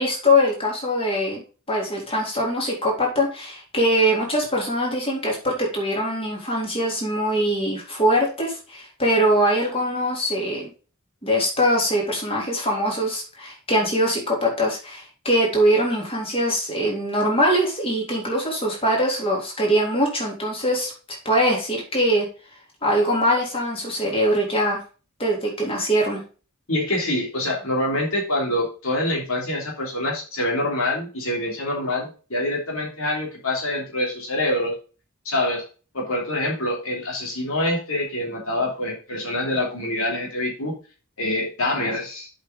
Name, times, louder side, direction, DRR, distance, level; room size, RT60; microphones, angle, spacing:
voice 1, 0.0-1.4 1.7-10.7 11.2-22.3 22.8-24.8 25.2-26.2, equal, 25° left, -2 dB, 3.7 m, -22 dB
voice 2, 26.7-34.7 35.2-35.6 35.9-40.8 41.2-42.3, left 1 dB, 70° left, -1 dB, 3.3 m, -25 dB
7.9 x 5.8 x 5.2 m, 0.35 s
head